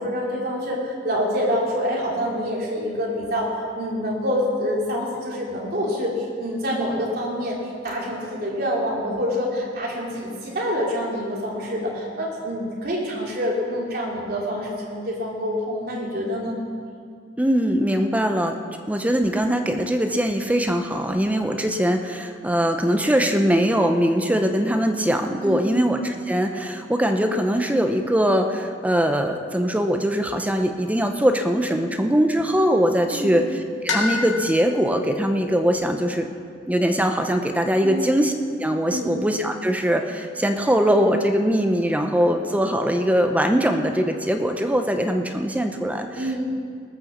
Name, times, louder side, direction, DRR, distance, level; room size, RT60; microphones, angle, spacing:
voice 1, 0.0-7.6 7.8-16.6 25.4-25.7 33.1-33.4 37.8-38.1 38.9-39.1 46.1-46.4, equal, 55° right, -3 dB, 3.2 m, -26 dB
voice 2, 17.4-18.6 18.9-33.4 33.8-36.3 36.7-38.3 38.6-46.4, equal, 10° right, 5 dB, 0.7 m, -21 dB
sound 1, 21.4-25.7 30.0-32.5 33.9-35.7, left 2 dB, 90° left, 2.1 m, -33 dB
19.0 x 7.0 x 7.2 m, 2.2 s
head